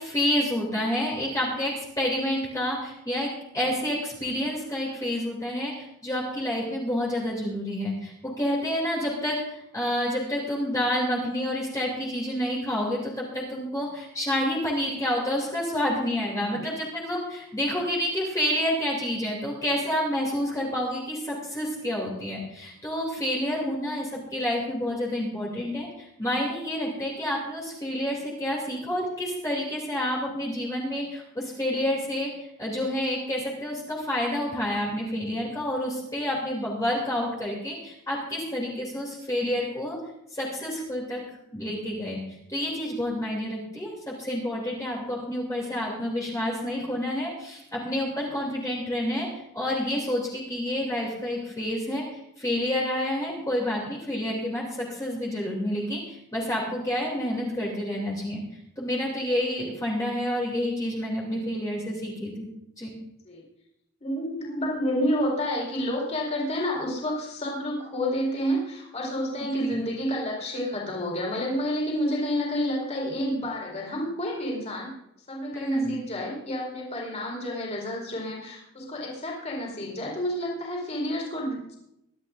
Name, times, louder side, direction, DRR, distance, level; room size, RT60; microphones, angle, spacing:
voice 1, 0.0-32.3 32.6-40.0 40.3-41.2 41.5-42.2 42.5-49.3 49.5-52.0 52.4-58.4 58.8-62.5 62.8-62.9 69.6-69.8 75.5-76.0, left 1 dB, 15° left, -4 dB, 2.9 m, -29 dB
voice 2, 64.0-74.9 75.3-81.8, equal, 30° left, -3 dB, 4.5 m, -29 dB
23.0 x 12.0 x 2.6 m, 0.83 s
head